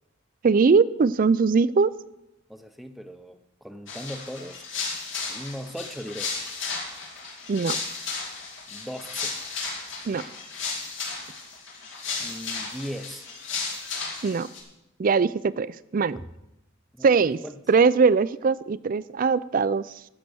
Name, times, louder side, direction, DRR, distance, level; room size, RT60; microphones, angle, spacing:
voice 1, 0.4-1.9 7.5-7.8 10.1-10.2 14.2-14.5 15.0-16.2 17.0-17.4 17.7-19.9, right 5 dB, 45° right, 18 dB, 0.4 m, -21 dB
voice 2, 2.5-4.6 5.0-6.3 8.7-9.4 12.2-13.3 16.9-17.1 17.4-17.6, equal, ahead, 8 dB, 0.7 m, -38 dB
sound 1, 3.9-14.6, left 4 dB, 70° left, 2.7 m, -34 dB
15.0 x 6.6 x 6.2 m, 0.90 s
head